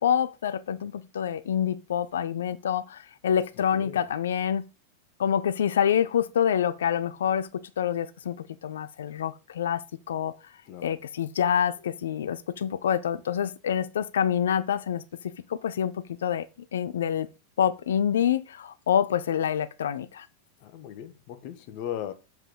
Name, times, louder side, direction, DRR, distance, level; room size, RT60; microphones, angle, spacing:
voice 1, 0.0-4.6 5.2-9.8 10.1-10.3 10.8-15.0 15.5-16.4 16.7-17.3 17.6-20.3, left 9 dB, 65° left, 0.7 m, -27 dB
voice 2, 3.6-4.1 10.7-10.9 20.6-22.1, left 10 dB, 45° left, 1.1 m, -38 dB
7.6 x 4.6 x 4.9 m
figure-of-eight pair, 90°, 0 cm